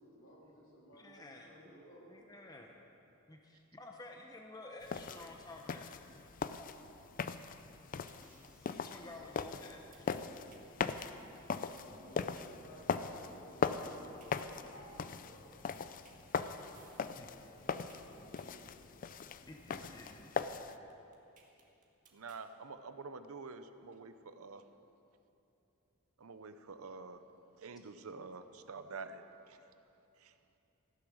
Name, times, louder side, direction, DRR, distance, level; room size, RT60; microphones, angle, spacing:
voice 1, 0.0-2.1 11.7-15.6 16.5-18.6, equal, 65° left, -5 dB, 3.6 m, -57 dB
voice 2, 0.9-1.8 2.1-2.8 3.3-5.9 6.2-6.7 8.2-10.4 13.3-13.4 14.1-14.6 17.2-17.3 19.5-20.4, left 2 dB, 20° left, 1 dB, 0.8 m, -53 dB
sound 1, 4.8-20.8, left 5 dB, 40° left, 0.4 m, -40 dB
sound 2, 8.0-22.4, right 5 dB, 40° right, 1.7 m, -65 dB
voice 3, 22.1-24.6 26.2-27.2 27.6-29.2 29.5-29.6 30.2-30.3, right 4 dB, 75° right, 10 dB, 0.7 m, -47 dB
15.0 x 10.0 x 6.3 m, 2.9 s
head